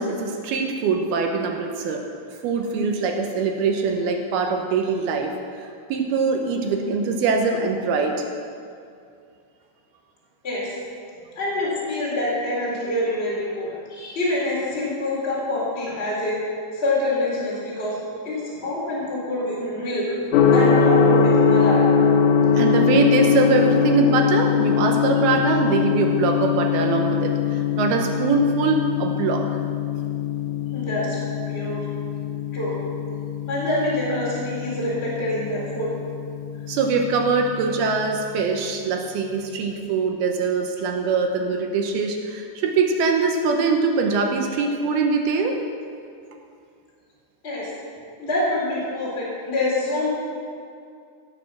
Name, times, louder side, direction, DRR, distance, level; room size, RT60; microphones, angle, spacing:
voice 1, 0.0-2.0 2.4-5.3 5.6-8.2 22.5-29.4 36.7-45.6, right 4 dB, 75° right, 3 dB, 2.8 m, -23 dB
voice 2, 11.4-16.4 16.7-18.0 18.2-20.2 20.5-21.9 30.7-31.2 31.5-31.9 32.5-32.7 33.5-35.9 47.4-47.7 48.2-50.1, left 1 dB, 15° left, -7 dB, 3.4 m, -26 dB
Gong, 20.3-38.2, left 6 dB, 70° left, 2.1 m, -22 dB
17.5 x 6.7 x 6.2 m, 2.3 s
omnidirectional pair, 4.7 m